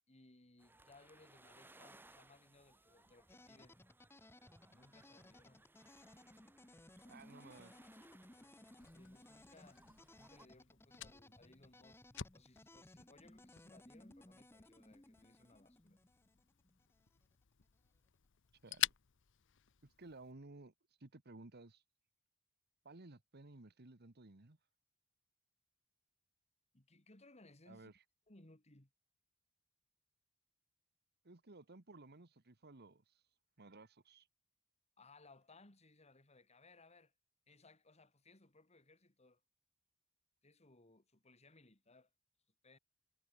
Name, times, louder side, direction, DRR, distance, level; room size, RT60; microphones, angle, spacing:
voice 1, 0.1-3.8 4.6-5.7 8.9-9.8 10.1-12.0 12.3-16.0 26.7-27.9 28.3-28.9 35.0-37.1 37.5-39.4 40.4-42.1 42.6-42.8, left 2 dB, 30° left, 2.5 m, -64 dB
sound 1, 0.6-10.5, right 2 dB, 10° right, 1.3 m, -66 dB
sound 2, 3.3-17.2, left 1 dB, 10° left, 0.9 m, -61 dB
voice 2, 7.1-7.7 18.6-18.9 19.8-20.7 21.0-21.8 22.8-24.6 27.7-27.9 31.2-33.2 33.6-34.3, right 2 dB, 50° right, 1.4 m, -57 dB
Fire, 8.8-20.3, left 12 dB, 60° left, 0.9 m, -48 dB
head